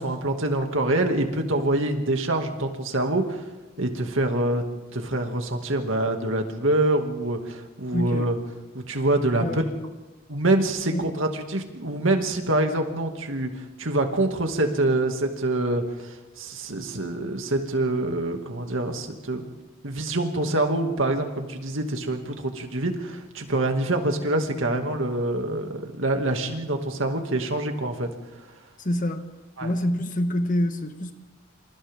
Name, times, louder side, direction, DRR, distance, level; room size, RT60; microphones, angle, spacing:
voice 1, 0.0-3.5 3.8-4.6 4.9-8.4 8.9-9.6 10.3-13.5 13.8-19.4 19.8-28.1 29.6-29.7, right 2 dB, 65° right, 4 dB, 2.4 m, -25 dB
voice 2, 7.9-8.3 9.4-9.6 10.9-11.1 28.8-29.3 29.6-31.1, left 1 dB, 40° left, 7 dB, 1.4 m, -26 dB
27.5 x 27.5 x 3.8 m, 1.1 s
head